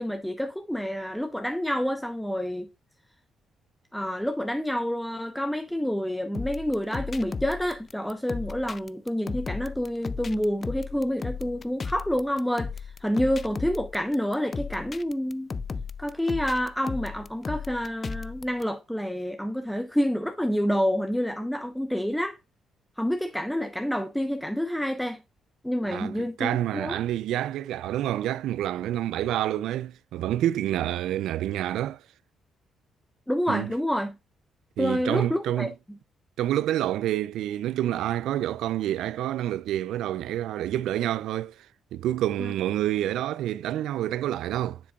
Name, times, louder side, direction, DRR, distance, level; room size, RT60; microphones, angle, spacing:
voice 1, 0.0-2.7 3.9-12.7 13.0-15.5 16.0-22.4 23.0-25.2 25.6-27.0 33.3-34.1 34.8-35.7 42.4-42.5, equal, 5° left, 0.8 m, -28 dB
sound 1, 6.3-18.6, left 5 dB, 35° left, 0.4 m, -35 dB
voice 2, 25.9-32.0 33.5-33.7 34.8-35.7 36.4-41.7 41.9-44.8, right 12 dB, 85° right, 0.3 m, -28 dB
7.7 x 6.8 x 2.3 m
cardioid pair, 90°, 0 cm